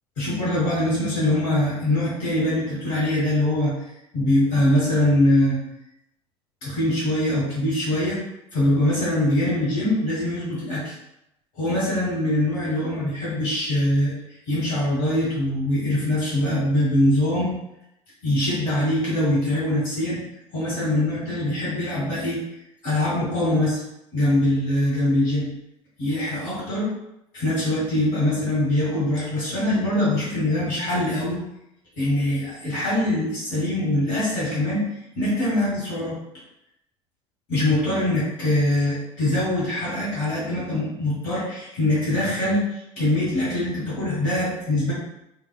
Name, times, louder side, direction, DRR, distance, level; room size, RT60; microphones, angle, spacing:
voice 1, 0.2-3.7 4.1-5.6 6.6-8.2 8.5-10.9 11.5-14.1 14.5-17.5 18.2-20.2 20.5-22.4 22.8-23.8 24.1-25.5 26.0-26.9 27.3-31.4 32.0-34.9 35.1-36.2 37.5-44.9, left 1 dB, 50° left, -7 dB, 1.5 m, -23 dB
3.3 x 2.3 x 2.3 m, 0.84 s
figure-of-eight pair, 65°, 16 cm